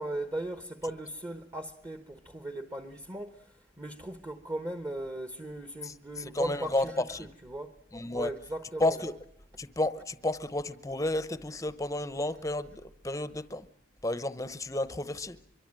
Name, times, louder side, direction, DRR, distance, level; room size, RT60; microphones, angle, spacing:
voice 1, 0.0-7.8 8.1-9.2, right 1 dB, 20° right, 1.1 m, -38 dB
voice 2, 5.8-7.3 7.9-8.3 8.8-9.1 9.6-13.7 14.0-15.4, left 1 dB, 15° left, 0.8 m, -32 dB
24.5 x 24.0 x 7.6 m
head